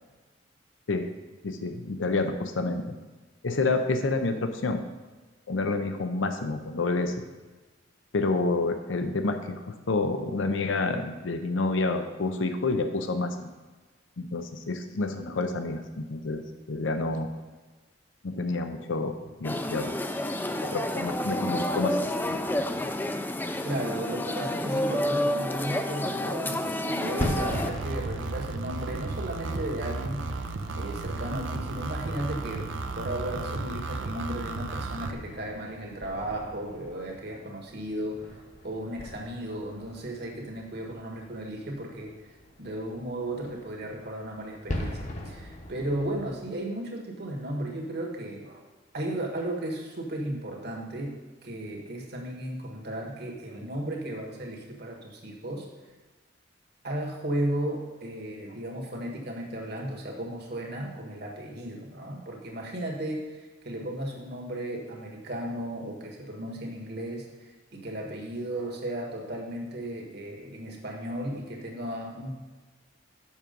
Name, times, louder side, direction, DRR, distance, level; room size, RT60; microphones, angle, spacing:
voice 1, 1.4-2.8 3.4-4.8 5.5-7.2 8.1-13.5 14.2-17.3 18.2-19.9 20.6-22.7, left 3 dB, 85° left, 7 dB, 0.6 m, -29 dB
sound 1, 19.4-27.7, left 1 dB, 10° left, 0.4 m, -30 dB
voice 2, 23.6-30.3 30.8-42.1 42.6-48.6 48.9-55.7 56.8-67.2 67.7-72.3, right 1 dB, 60° right, 0 dB, 1.6 m, -35 dB
sound 2, 27.1-46.5, left 1 dB, 40° left, 0.9 m, -41 dB
sound 3, 27.5-35.1, right 3 dB, 80° right, 0.6 m, -34 dB
7.3 x 6.0 x 5.2 m, 1.3 s
head